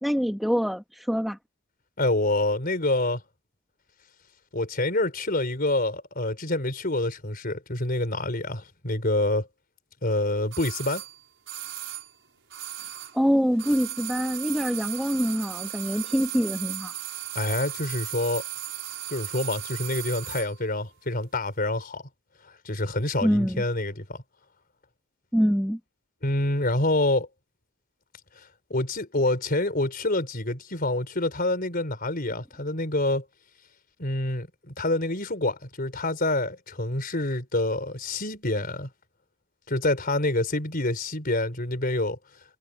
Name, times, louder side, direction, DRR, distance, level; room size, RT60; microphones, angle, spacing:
voice 1, 0.0-1.4 13.1-16.9 23.2-23.6 25.3-25.8, equal, ahead, 1.6 m, -25 dB
voice 2, 2.0-3.2 4.5-9.5 10.0-11.0 17.3-18.4 19.1-22.0 22.4-24.2 26.2-27.3 28.4-33.2 34.0-38.9 39.7-42.2, left 2 dB, 40° left, 4.4 m, -27 dB
sound 1, 10.5-13.3 13.5-20.5 20.8-20.9, right 13 dB, 55° right, 5.9 m, -36 dB
head